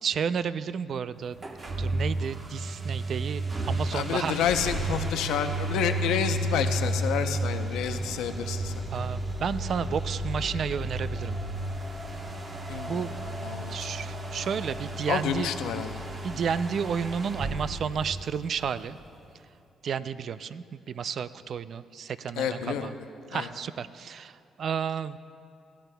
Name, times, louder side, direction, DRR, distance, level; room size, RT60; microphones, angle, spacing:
voice 1, 0.0-1.4 1.8-4.4 8.9-11.4 12.9-13.2 13.7-15.5 16.2-19.0 19.8-22.9 23.3-24.3 24.6-25.2, right 7 dB, 60° right, 14 dB, 0.4 m, -31 dB
sound 1, 1.3-18.8, right 1 dB, 40° right, 1.1 m, -32 dB
voice 2, 3.9-8.7 12.7-13.9 15.1-16.0 22.4-22.9 23.3-23.5, left 8 dB, 90° left, 7 dB, 0.6 m, -29 dB
19.5 x 15.0 x 2.3 m, 2.6 s
cardioid pair, 90°, 0 cm